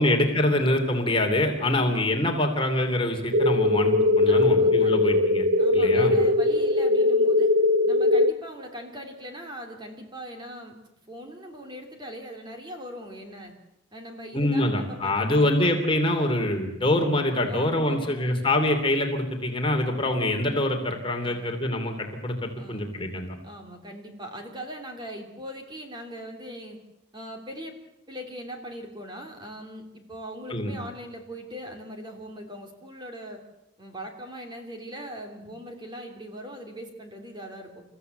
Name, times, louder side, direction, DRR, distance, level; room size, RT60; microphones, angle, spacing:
voice 1, 0.0-5.4 5.7-6.1 14.3-23.4 30.5-30.7, left 1 dB, 25° left, 4 dB, 2.8 m, -25 dB
voice 2, 1.6-1.9 4.3-5.1 5.6-7.5 7.8-10.7 11.1-13.5 13.9-15.7 17.5-18.5 21.2-21.6 22.6-23.0 23.4-26.8 27.1-27.7 28.1-33.4 33.8-37.8, equal, 20° right, 4 dB, 3.1 m, -40 dB
sound 1, 3.3-8.3, left 2 dB, 55° right, 0.7 m, -20 dB
29.0 x 15.0 x 8.0 m, 0.89 s
head